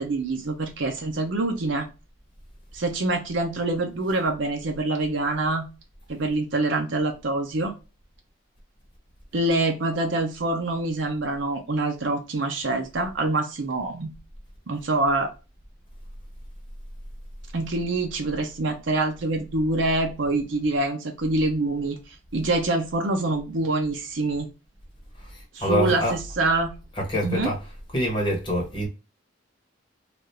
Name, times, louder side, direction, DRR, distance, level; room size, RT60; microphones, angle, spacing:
voice 1, 0.0-1.9 2.7-5.6 6.1-7.7 9.3-14.1 14.7-15.3 17.5-24.5 25.5-26.7 27.2-27.5, right 2 dB, 75° right, 0.6 m, -25 dB
voice 2, 25.2-26.1 27.0-27.6 27.9-28.9, equal, 25° left, 1.1 m, -26 dB
3.4 x 2.4 x 2.7 m
head